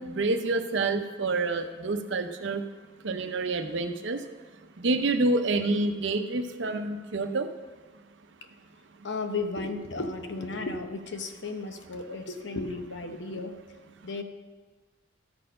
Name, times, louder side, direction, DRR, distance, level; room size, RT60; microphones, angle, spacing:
voice 1, 0.0-2.6 3.0-4.2 4.8-7.5, right 3 dB, 60° right, 8 dB, 0.6 m, -28 dB
voice 2, 9.0-13.6 14.0-14.2, left 3 dB, 60° left, 6 dB, 0.8 m, -34 dB
13.0 x 4.4 x 5.5 m, 1.4 s
head